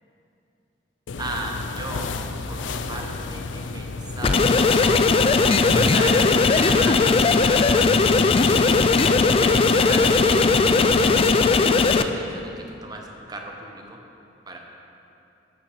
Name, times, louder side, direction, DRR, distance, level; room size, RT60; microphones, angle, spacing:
sound 1, 1.1-11.4, left 3 dB, 90° left, 0.5 m, -32 dB
voice 1, 1.2-2.1 2.5-5.0 5.4-8.2 8.5-8.8 9.1-14.0 14.5-14.6, right 1 dB, 20° right, 1 dB, 1.0 m, -35 dB
sound 2, 4.2-12.0, left 4 dB, 30° left, 0.3 m, -18 dB
12.0 x 6.6 x 4.9 m, 2.8 s
head